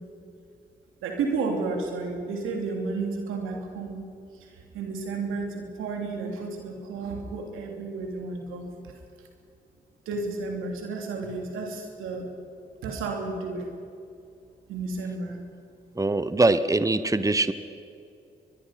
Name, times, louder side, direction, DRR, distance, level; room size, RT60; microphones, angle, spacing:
voice 1, 1.0-4.0 4.4-4.5 4.7-8.7 10.1-12.3 12.8-13.7 14.7-15.4, right 3 dB, 90° right, 2 dB, 3.0 m, -32 dB
voice 2, 16.0-17.5, right 2 dB, 15° right, 13 dB, 1.1 m, -22 dB
24.0 x 22.0 x 5.8 m, 2.5 s
supercardioid pair, 45°, 20 cm